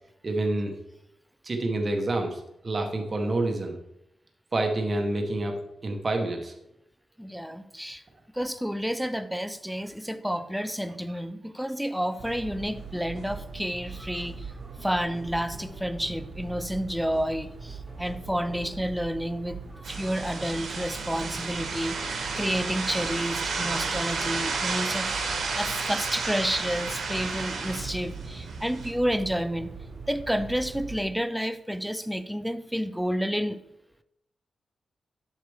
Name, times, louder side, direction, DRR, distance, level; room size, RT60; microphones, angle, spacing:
voice 1, 0.2-0.7 1.4-3.7 4.5-5.6 5.8-6.5 14.1-14.3, right 2 dB, 30° right, 3 dB, 0.9 m, -28 dB
voice 2, 7.2-8.0 8.3-14.5 14.8-25.1 25.5-29.7 30.1-33.6, equal, ahead, 11 dB, 0.4 m, -30 dB
sound 1, 12.1-18.8, left 1 dB, 30° left, 1.8 m, -49 dB
sound 2, 12.2-31.0, right 5 dB, 60° right, 1.1 m, -42 dB
sound 3, 19.8-28.9, right 4 dB, 85° right, 1.4 m, -32 dB
7.8 x 6.5 x 3.4 m, 0.81 s
wide cardioid pair, 170°, 0 cm